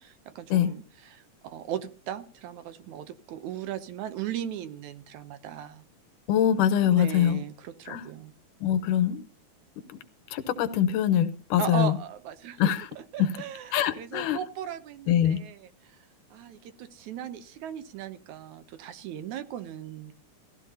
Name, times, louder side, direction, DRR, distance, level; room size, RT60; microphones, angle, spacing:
voice 1, 0.0-5.8 6.8-8.3 11.6-12.7 13.1-16.0 16.3-20.1, right 10 dB, 75° right, 11 dB, 2.1 m, -37 dB
voice 2, 6.3-7.4 7.9-8.0 8.6-9.2 10.3-12.0 12.6-12.9 13.2-13.3 13.7-14.4 15.1-15.4, left 10 dB, 85° left, 10 dB, 2.5 m, -23 dB
17.5 x 15.0 x 2.8 m, 0.37 s
omnidirectional pair, 3.7 m